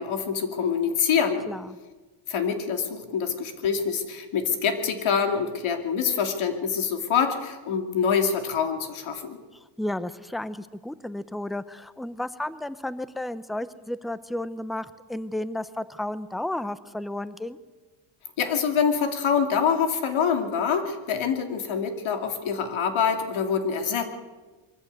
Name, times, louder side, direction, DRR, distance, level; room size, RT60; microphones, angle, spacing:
voice 1, 0.0-1.4 2.3-9.4 18.4-24.0, left 6 dB, 70° left, 6 dB, 2.5 m, -25 dB
voice 2, 1.5-1.8 9.5-17.6, left 1 dB, ahead, 15 dB, 0.6 m, -33 dB
22.5 x 14.5 x 8.1 m, 1.3 s
cardioid pair, 115°, 50 cm